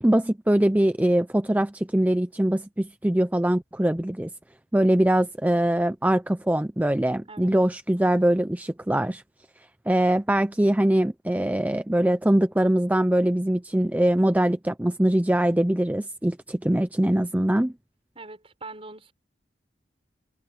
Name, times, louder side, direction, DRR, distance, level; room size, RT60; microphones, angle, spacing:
voice 1, 0.0-4.3 4.7-9.2 9.9-17.7, right 1 dB, 10° right, 0.5 m, -22 dB
voice 2, 18.1-19.1, right 3 dB, 35° right, 6.0 m, -42 dB
head